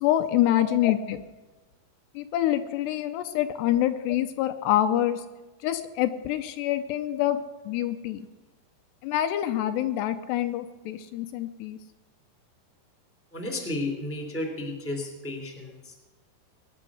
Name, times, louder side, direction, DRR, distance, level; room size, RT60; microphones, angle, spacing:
voice 1, 0.0-1.2 2.2-5.2 5.6-7.4 7.7-8.2 9.0-11.8, left 12 dB, 80° left, 9 dB, 2.8 m, -26 dB
voice 2, 13.3-16.0, left 2 dB, 5° left, 2 dB, 2.5 m, -33 dB
21.5 x 10.5 x 6.3 m, 1.2 s
omnidirectional pair, 4.9 m